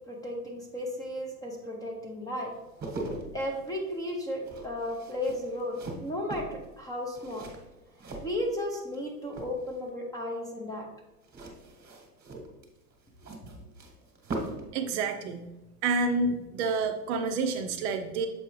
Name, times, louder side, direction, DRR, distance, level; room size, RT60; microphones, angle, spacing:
voice 1, 0.1-2.5 3.3-7.5 8.2-10.9, left 1 dB, 10° left, 0 dB, 0.6 m, -34 dB
sound 1, 2.5-9.0 9.3-9.9 11.2-14.7 15.0-15.2, right 2 dB, 20° right, 1.2 m, -41 dB
voice 2, 14.7-15.5 15.8-18.3, right 3 dB, 45° right, 6 dB, 0.5 m, -28 dB
7.0 x 4.5 x 3.0 m, 1.0 s
hypercardioid pair, 120°, 49 cm